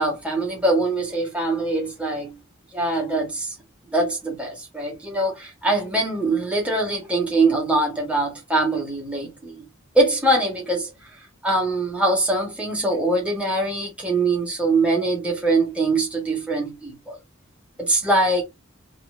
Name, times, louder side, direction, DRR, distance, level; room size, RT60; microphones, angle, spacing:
voice 1, 0.0-2.4 2.7-3.5 3.9-9.7 9.9-10.9 11.4-17.2 17.8-18.4, right 2 dB, 5° right, 2.1 m, -23 dB
4.8 x 3.2 x 3.5 m
head